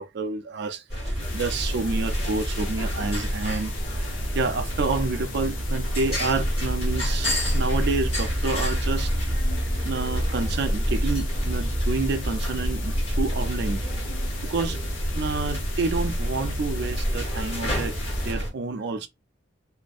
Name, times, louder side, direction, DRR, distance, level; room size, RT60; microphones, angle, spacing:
voice 1, 0.0-3.7 4.3-9.1 9.5-13.8 14.4-14.8 15.1-18.0 18.2-19.1, right 3 dB, 60° right, 0.4 m, -29 dB
sound 1, 0.9-18.5, equal, 30° left, 1.2 m, -29 dB
sound 2, 1.2-18.3, left 1 dB, 80° left, 0.7 m, -36 dB
sound 3, 6.3-14.0, equal, 10° right, 0.7 m, -29 dB
2.5 x 2.1 x 2.3 m
head